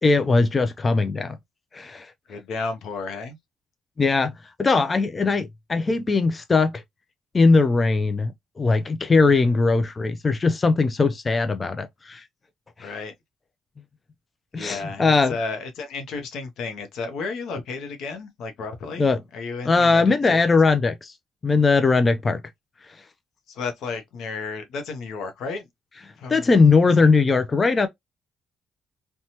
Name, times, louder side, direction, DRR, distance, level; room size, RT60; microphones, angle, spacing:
voice 1, 0.0-1.4 1.7-2.1 4.0-4.3 4.6-6.7 7.3-12.2 12.8-12.9 14.5-15.4 19.0-19.2 19.7-21.1 21.4-22.4 26.3-27.9, left 4 dB, 30° left, 0.4 m, -20 dB
voice 2, 2.3-3.4 9.3-9.4 12.8-13.1 14.5-20.4 23.5-25.7 26.2-26.6 27.0-27.1, left 4 dB, 80° left, 0.6 m, -33 dB
2.8 x 2.2 x 2.8 m
cardioid pair, 90°, 0 cm